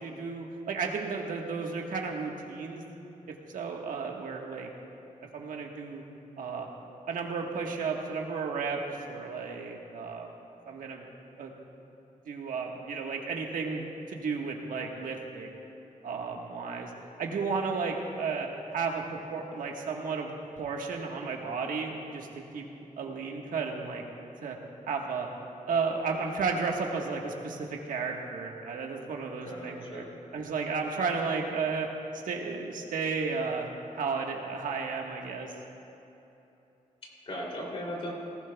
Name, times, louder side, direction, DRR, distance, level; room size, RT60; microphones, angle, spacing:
voice 1, 0.0-2.8 3.3-4.7 5.3-6.0 6.4-6.7 7.1-8.8 9.1-10.3 10.7-11.0 11.4-11.5 12.3-15.6 16.0-16.9 17.2-22.7 23.0-24.0 24.4-24.6 24.9-25.3 25.7-30.0 30.3-31.9 32.1-33.7 33.9-35.5, right 4 dB, 85° right, 1 dB, 1.4 m, -33 dB
voice 2, 29.4-30.1 37.0-38.1, equal, 45° left, -2 dB, 2.9 m, -38 dB
19.0 x 15.0 x 2.3 m, 3.0 s
wide cardioid pair, 140°, 14 cm